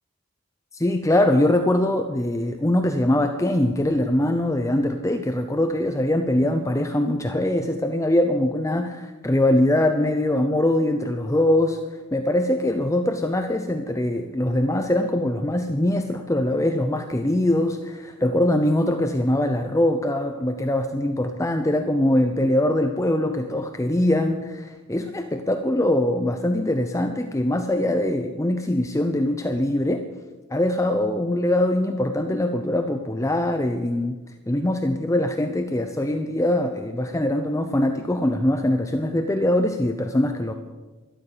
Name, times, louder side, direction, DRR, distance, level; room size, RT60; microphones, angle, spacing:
voice 1, 0.7-30.0 30.5-34.2 34.5-40.5, left 1 dB, 15° left, 6 dB, 0.6 m, -22 dB
12.5 x 12.0 x 6.7 m, 1.2 s
head